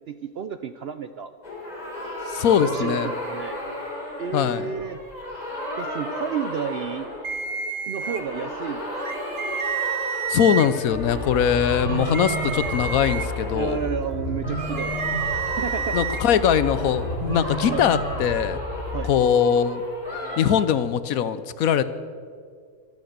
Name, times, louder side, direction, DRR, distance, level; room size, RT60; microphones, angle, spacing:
voice 1, 0.1-1.3 2.6-3.6 4.2-5.0 5.8-7.1 7.9-9.0 13.5-15.1 15.6-16.0 17.7-17.8 18.9-19.1, right 7 dB, 65° right, 10 dB, 0.6 m, -31 dB
sound 1, 1.4-7.7 7.9-20.5, equal, 25° left, 3.6 m, -34 dB
voice 2, 2.2-3.1 4.3-4.7 10.3-13.8 15.9-18.6 19.0-19.8 20.4-21.8, left 8 dB, 70° left, 14 dB, 1.1 m, -21 dB
sound 2, 7.2-8.2 9.0-10.7 12.0-13.3 14.6-16.2, right 7 dB, 40° right, 1.0 m, -29 dB
sound 3, 10.9-18.9, equal, 80° right, 5.1 m, -32 dB
25.5 x 8.7 x 6.6 m, 2.1 s
omnidirectional pair, 1.6 m